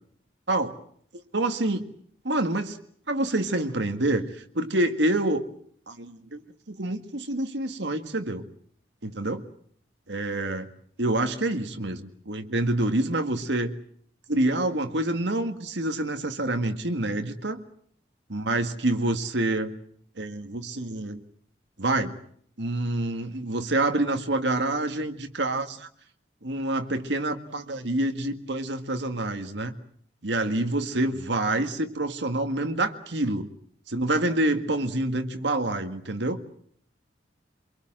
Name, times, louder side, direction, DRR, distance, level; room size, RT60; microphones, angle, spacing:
voice 1, 1.1-1.9 2.2-2.8 3.1-5.4 5.9-6.4 6.7-8.4 9.0-9.5 10.1-10.7 11.0-13.7 14.3-17.6 18.3-19.7 20.2-21.2 21.8-22.1 22.6-25.9 26.4-29.7 30.2-33.5 33.9-36.4, right 2 dB, 80° right, 6 dB, 1.9 m, -27 dB
24.5 x 23.0 x 7.7 m, 0.63 s
head